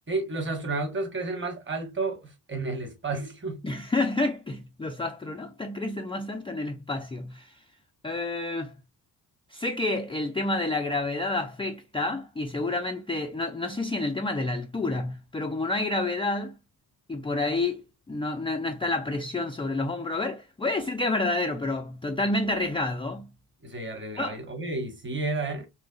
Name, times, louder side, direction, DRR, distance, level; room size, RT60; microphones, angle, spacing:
voice 1, 0.1-3.6 23.6-25.7, right 3 dB, 30° right, 1.6 m, -31 dB
voice 2, 3.6-7.6 8.0-8.7 9.5-16.5 17.1-23.3 24.1-24.4, left 2 dB, 15° left, 0.4 m, -29 dB
5.9 x 2.2 x 2.4 m
cardioid pair, 95°, 39 cm